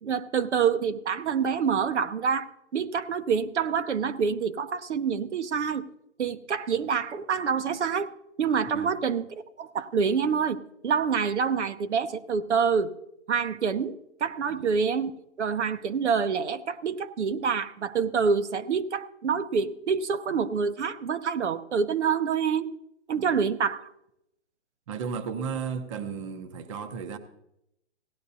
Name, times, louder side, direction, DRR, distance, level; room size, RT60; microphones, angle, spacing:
voice 1, 0.0-5.9 6.2-8.1 8.4-9.3 9.6-12.9 13.3-13.9 14.2-15.1 15.4-22.7 23.1-23.9, right 6 dB, 75° right, 0.8 m, -27 dB
voice 2, 24.9-27.2, right 6 dB, 25° right, 0.7 m, -34 dB
17.0 x 11.0 x 2.7 m
hypercardioid pair, 150°, 35 cm